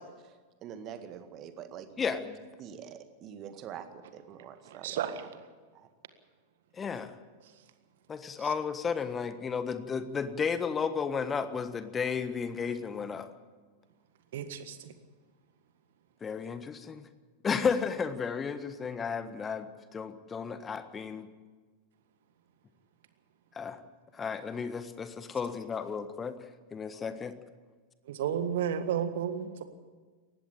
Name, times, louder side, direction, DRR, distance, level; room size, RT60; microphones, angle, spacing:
voice 1, 0.0-5.1 5.7-5.9, right 8 dB, 35° right, 9 dB, 1.9 m, -46 dB
voice 2, 4.8-5.2 14.3-14.9 28.1-29.6, right 9 dB, 55° right, 10 dB, 1.7 m, -32 dB
voice 3, 6.8-7.1 8.1-13.3 16.2-17.1 17.4-21.3 23.5-23.8 24.1-26.3 26.7-27.3, left 6 dB, 20° left, 12 dB, 1.4 m, -33 dB
19.5 x 15.0 x 9.0 m, 1.4 s
figure-of-eight pair, 90°, 0 cm